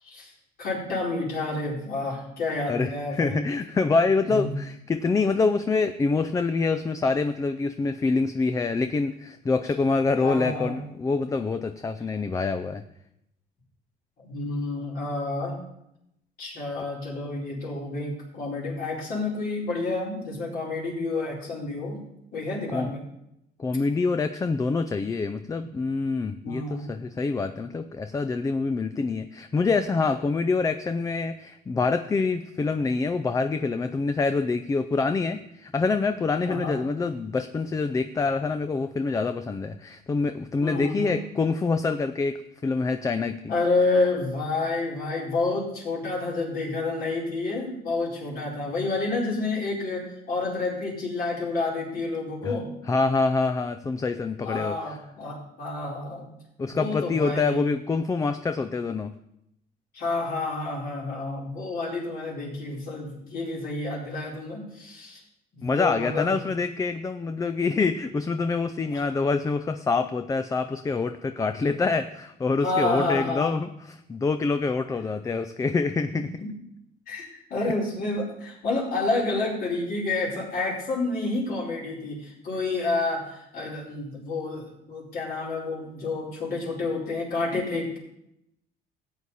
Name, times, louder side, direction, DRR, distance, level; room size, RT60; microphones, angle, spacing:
voice 1, 0.6-3.4 4.2-4.5 10.2-10.8 14.2-15.6 16.4-22.0 22.3-23.0 26.4-26.9 36.4-36.8 40.6-41.2 43.5-52.7 54.4-56.3 56.7-57.7 59.9-65.2 65.5-66.3 68.9-69.0 72.6-73.6 76.1-76.5 77.1-88.0, left 3 dB, 60° left, -4 dB, 4.5 m, -29 dB
voice 2, 2.7-12.8 22.7-22.9 23.6-43.5 52.4-52.5 52.9-55.0 56.6-59.1 65.6-76.3 77.6-77.7, left 4 dB, 20° left, 10 dB, 0.4 m, -26 dB
14.0 x 8.3 x 4.2 m, 0.80 s
cardioid pair, 110°, 17 cm